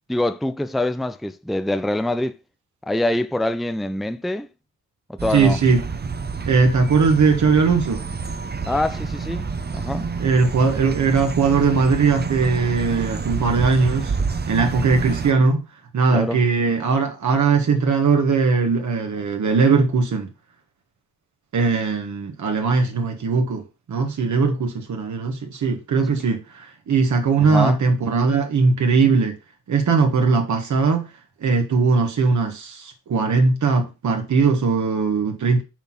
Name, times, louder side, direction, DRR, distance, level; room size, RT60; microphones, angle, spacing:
voice 1, 0.1-2.4 2.9-4.5 5.1-5.6 8.7-9.4 9.7-10.1 16.1-16.4 27.4-27.8, left 1 dB, ahead, 0.5 m, -24 dB
sound 1, 5.2-15.3, right 5 dB, 30° right, 0.9 m, -28 dB
voice 2, 5.3-5.8 6.5-8.0 10.2-14.1 14.5-15.6 15.9-20.3 21.5-23.6 23.9-29.4 29.7-31.1 31.4-35.6, right 4 dB, 55° right, 1.7 m, -19 dB
6.9 x 4.0 x 6.0 m
supercardioid pair, 60°, 35 cm